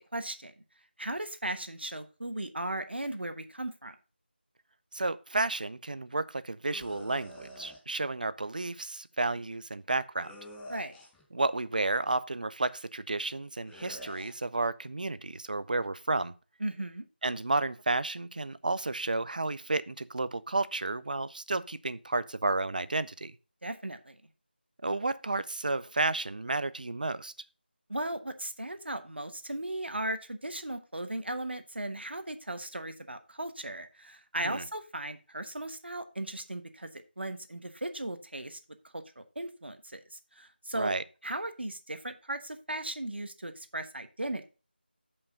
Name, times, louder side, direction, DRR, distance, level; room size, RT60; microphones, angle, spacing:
voice 1, 0.1-0.5 1.0-3.9 10.7-11.0 16.6-17.0 23.6-24.2 27.9-38.6 39.2-40.9 41.2-44.4, right 1 dB, 75° right, 1.2 m, -37 dB
voice 2, 4.9-10.4 11.3-16.3 17.2-23.3 24.8-27.3 34.4-34.6 40.8-41.0, right 2 dB, 50° right, 0.5 m, -32 dB
sound 1, 6.7-7.8 10.2-11.3 13.6-14.4, equal, 5° left, 0.5 m, -47 dB
7.0 x 5.4 x 4.9 m
figure-of-eight pair, 170°, 6 cm